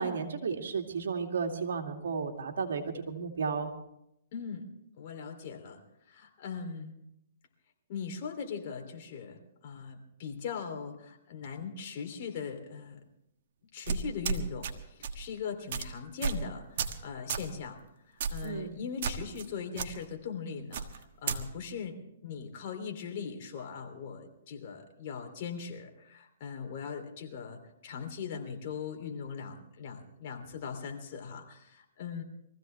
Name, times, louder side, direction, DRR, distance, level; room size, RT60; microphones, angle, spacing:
voice 1, 0.0-3.7 18.4-18.8, right 5 dB, 80° right, 3 dB, 2.3 m, -33 dB
voice 2, 4.3-4.7 5.0-5.8 6.1-7.0 7.9-13.0 13.7-17.8 18.3-32.2, left 6 dB, 45° left, 3 dB, 3.1 m, -40 dB
sound 1, 13.9-14.7 15.0-15.2 15.7-15.9 16.2-16.4 16.8-17.0 17.3-17.5 18.2-18.5 19.0-19.5 19.8-19.9 20.7-21.4, right 6 dB, 60° right, 1.5 m, -32 dB
23.5 x 15.5 x 3.4 m, 0.80 s
hypercardioid pair, 150°, 0 cm